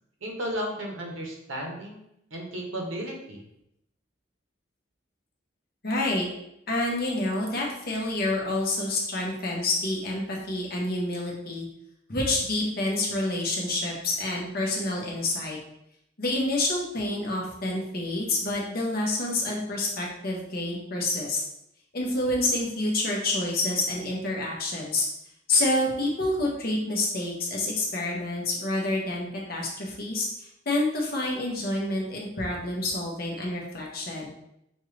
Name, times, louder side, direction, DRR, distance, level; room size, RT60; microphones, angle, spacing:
voice 1, 0.2-2.0 2.3-3.4, equal, 80° right, 0 dB, 1.0 m, -34 dB
voice 2, 5.8-6.3 6.7-11.7 12.1-15.6 16.2-21.4 21.9-25.0 25.5-34.3, left 2 dB, 50° left, -2 dB, 0.9 m, -28 dB
5.3 x 2.5 x 3.2 m, 0.80 s
head